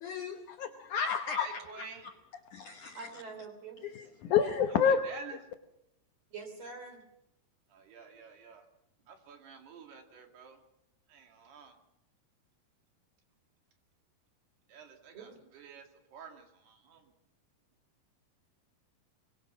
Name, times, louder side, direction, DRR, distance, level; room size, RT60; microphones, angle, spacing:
voice 1, 0.0-1.5 2.5-3.1 3.8-5.0, left 7 dB, 90° left, 7 dB, 1.7 m, -30 dB
voice 2, 1.3-2.0 4.4-5.4 7.7-8.7 9.1-10.6 11.1-11.8 14.7-17.1, right 5 dB, 65° right, 3 dB, 4.3 m, -49 dB
voice 3, 2.9-3.8 6.3-7.0 15.1-15.4, right 4 dB, 40° right, 6 dB, 4.2 m, -45 dB
24.0 x 22.0 x 6.2 m, 0.84 s
omnidirectional pair, 5.1 m